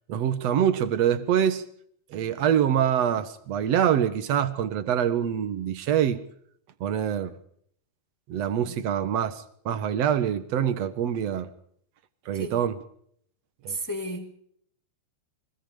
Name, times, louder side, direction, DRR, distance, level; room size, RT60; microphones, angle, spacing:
voice 1, 0.1-1.6 2.1-6.2 6.8-7.3 8.3-11.5 12.3-12.8 13.6-13.8, right 9 dB, 55° right, 2.0 m, -25 dB
voice 2, 13.7-14.3, right 1 dB, 10° left, 0.9 m, -33 dB
24.5 x 22.0 x 5.1 m
omnidirectional pair, 4.6 m